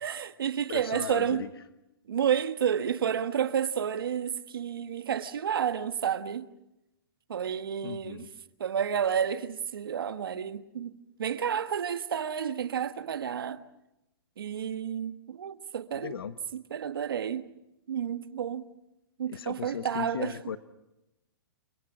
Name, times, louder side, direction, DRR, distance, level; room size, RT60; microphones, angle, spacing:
voice 1, 0.0-1.4 2.1-6.5 7.3-8.2 8.6-13.6 14.4-16.1 16.5-17.5 17.9-18.6 19.2-20.3, right 8 dB, 70° right, 1.5 m, -30 dB
voice 2, 0.7-1.6 7.8-8.3 15.9-16.4 19.3-20.6, left 8 dB, 85° left, 1.2 m, -37 dB
30.0 x 23.0 x 6.2 m
hypercardioid pair, 180°, 12 cm